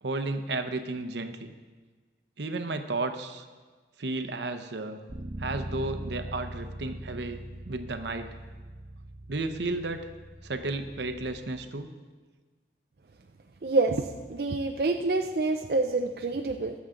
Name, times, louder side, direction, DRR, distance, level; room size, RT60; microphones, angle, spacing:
voice 1, 0.0-1.5 2.4-3.5 4.0-5.0 5.4-8.3 9.3-10.1 10.4-11.9, right 2 dB, 80° right, 8 dB, 0.8 m, -33 dB
Bass guitar, 5.1-11.3, right 1 dB, 35° right, 1.0 m, -41 dB
voice 2, 13.6-16.7, right 3 dB, 60° right, 4 dB, 0.5 m, -27 dB
21.0 x 7.3 x 3.8 m, 1.4 s
head